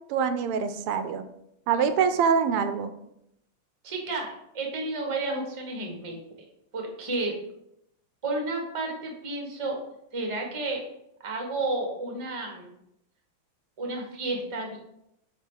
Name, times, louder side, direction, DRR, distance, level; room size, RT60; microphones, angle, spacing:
voice 1, 0.1-1.2 1.7-2.9, right 6 dB, 85° right, 10 dB, 1.5 m, -24 dB
voice 2, 3.8-6.2 6.7-7.3 8.2-9.8 10.1-10.8 11.2-12.7 13.8-14.8, right 2 dB, 20° right, 1 dB, 0.8 m, -31 dB
5.9 x 4.0 x 4.6 m, 0.78 s
omnidirectional pair, 2.4 m